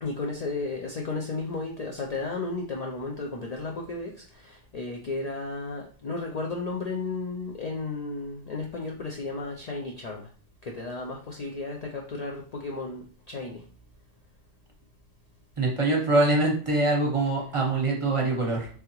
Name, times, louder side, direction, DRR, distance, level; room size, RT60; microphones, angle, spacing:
voice 1, 0.0-10.2 10.6-13.6, left 3 dB, 50° left, 0 dB, 0.5 m, -34 dB
voice 2, 15.6-18.7, right 2 dB, 30° right, -2 dB, 0.9 m, -24 dB
3.4 x 3.3 x 3.0 m, 0.43 s
omnidirectional pair, 1.1 m